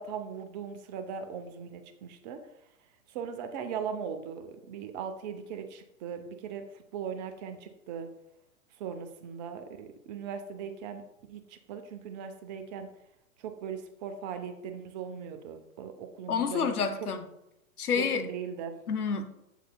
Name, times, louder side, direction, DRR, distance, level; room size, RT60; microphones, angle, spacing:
voice 1, 0.0-2.4 3.1-6.7 6.9-8.1 8.8-11.0 11.3-12.9 13.4-16.7 17.9-18.7, right 7 dB, 30° right, 8 dB, 0.6 m, -39 dB
voice 2, 16.3-17.2 17.8-18.3 18.9-19.2, left 6 dB, 80° left, 9 dB, 0.9 m, -29 dB
7.4 x 6.5 x 2.2 m, 0.84 s
figure-of-eight pair, 110°, 44 cm